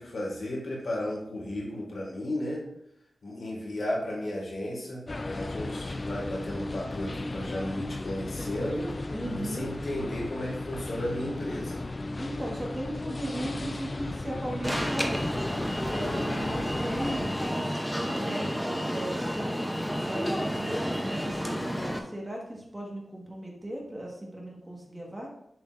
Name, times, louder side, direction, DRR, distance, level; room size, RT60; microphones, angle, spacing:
voice 1, 0.0-2.7 3.2-8.9 9.2-11.9 16.1-16.4, left 1 dB, 70° left, -2 dB, 2.0 m, -34 dB
sound 1, 5.1-17.5, left 2 dB, 35° left, 0.3 m, -35 dB
voice 2, 9.1-9.7 12.2-15.3 15.9-19.8 20.1-25.3, right 1 dB, 20° right, -2 dB, 1.5 m, -37 dB
Alarm, 14.6-22.0, equal, 5° left, 0.7 m, -31 dB
7.0 x 6.3 x 2.6 m, 0.75 s
wide cardioid pair, 130°, 0 cm